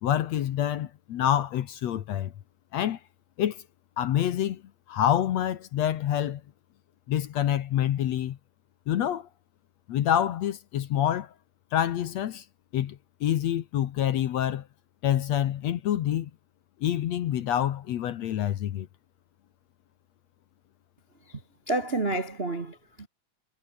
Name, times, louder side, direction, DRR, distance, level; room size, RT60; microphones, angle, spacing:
voice 1, 0.0-2.3 2.7-3.0 3.4-3.6 4.0-4.6 4.9-6.4 7.1-8.4 8.9-9.3 9.9-11.3 11.7-12.4 12.7-14.7 15.0-16.3 16.8-18.9, left 11 dB, 65° left, 2.1 m, -27 dB
voice 2, 21.7-23.1, right 2 dB, 35° right, 1.0 m, -29 dB
omnidirectional pair, 3.8 m